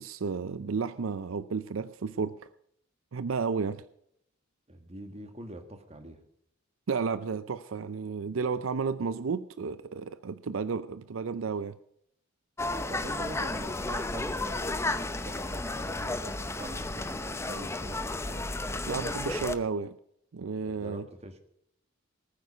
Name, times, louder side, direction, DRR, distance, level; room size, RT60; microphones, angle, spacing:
voice 1, 0.0-2.4 3.1-3.8 6.9-11.8 18.9-20.0 20.3-21.0, right 5 dB, 75° right, 15 dB, 0.5 m, -32 dB
voice 2, 4.7-6.2 12.9-18.5 20.6-21.4, right 1 dB, 30° right, 7 dB, 1.8 m, -44 dB
sound 1, 12.6-19.6, left 2 dB, 15° left, 0.8 m, -33 dB
19.5 x 9.5 x 5.6 m, 0.71 s
head